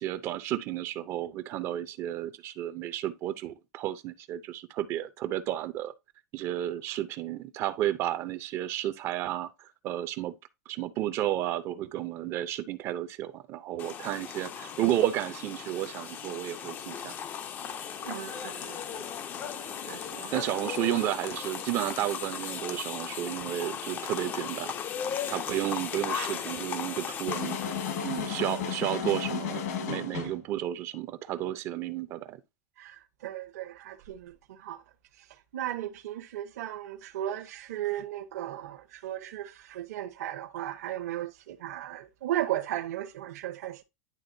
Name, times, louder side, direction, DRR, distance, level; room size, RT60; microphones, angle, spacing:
voice 1, 0.0-5.9 6.3-10.3 10.7-17.2 20.3-24.7 25.3-27.6 28.0-32.4, right 13 dB, 30° right, 0.5 m, -32 dB
sound 1, 13.8-28.9, left 8 dB, 20° left, 0.5 m, -37 dB
voice 2, 18.0-19.0 19.4-20.4 32.8-34.3 34.6-34.8 35.5-43.8, right 13 dB, 65° right, 1.0 m, -36 dB
sound 2, 27.3-30.4, left 7 dB, 65° left, 1.7 m, -33 dB
10.5 x 3.6 x 2.6 m
supercardioid pair, 165°, 9 cm